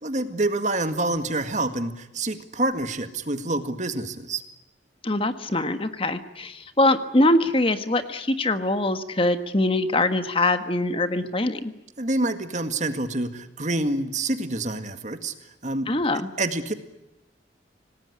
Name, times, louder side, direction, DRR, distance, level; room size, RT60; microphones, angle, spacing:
voice 1, 0.0-4.4 12.0-15.3 15.6-15.9 16.4-16.7, right 2 dB, 40° right, 9 dB, 1.9 m, -27 dB
voice 2, 5.0-11.7 15.9-16.3, left 2 dB, 30° left, 9 dB, 1.5 m, -23 dB
26.5 x 19.0 x 9.9 m, 0.95 s
head